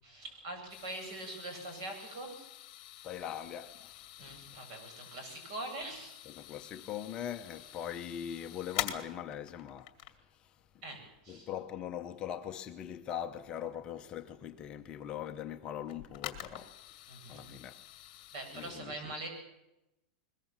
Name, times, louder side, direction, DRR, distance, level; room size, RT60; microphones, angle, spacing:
voice 1, 0.0-2.5 4.2-6.1 10.8-11.5 17.1-17.5 18.3-19.3, right 2 dB, 50° right, 7.9 m, -43 dB
sound 1, 0.7-10.2 13.6-13.7 15.9-18.7, left 13 dB, 40° left, 2.3 m, -45 dB
voice 2, 3.0-4.6 6.3-9.9 10.4-10.5 11.3-16.7 17.3-17.8 18.5-19.1, left 9 dB, 20° left, 0.8 m, -41 dB
22.0 x 20.5 x 7.4 m
supercardioid pair, 175°, 4 cm